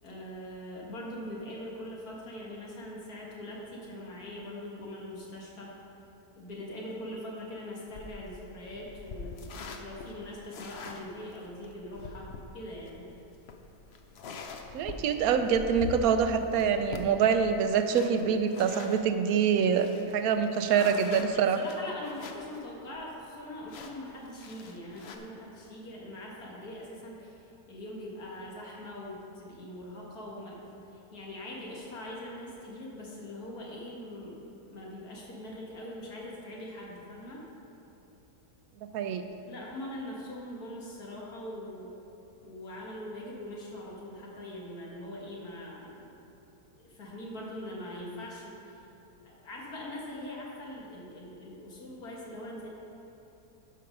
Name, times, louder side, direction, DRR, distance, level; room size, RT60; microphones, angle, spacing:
voice 1, 0.0-5.7 6.4-9.4 9.8-13.1 20.7-30.6 30.9-34.4 34.7-37.4 39.5-41.9 42.4-46.2 46.8-48.5 49.2-52.7, left 1 dB, 75° left, -4 dB, 2.2 m, -42 dB
sound 1, 7.9-19.1 19.5-19.6 19.8-22.6 22.9-23.0 23.7-25.2, left 4 dB, 55° left, 0.8 m, -44 dB
voice 2, 14.7-21.6 38.9-39.2, right 7 dB, 75° right, 8 dB, 1.0 m, -25 dB
11.5 x 5.5 x 5.3 m, 2.9 s
omnidirectional pair, 1.6 m